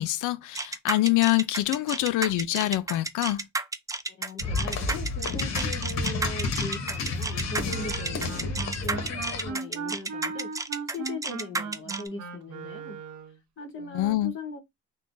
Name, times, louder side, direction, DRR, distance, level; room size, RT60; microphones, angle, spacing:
voice 1, 0.0-3.4 13.9-14.3, left 16 dB, 85° left, 0.5 m, -25 dB
sound 1, 0.5-12.1, right 3 dB, 10° right, 0.3 m, -31 dB
voice 2, 4.1-10.5 10.9-13.0 13.6-14.6, left 2 dB, 40° left, 1.3 m, -39 dB
sound 2, 4.4-9.5, left 3 dB, 60° left, 1.1 m, -31 dB
Wind instrument woodwind instrument, 7.6-13.4, right 5 dB, 75° right, 0.7 m, -38 dB
3.7 x 2.2 x 2.5 m
cardioid pair, 90°, 30 cm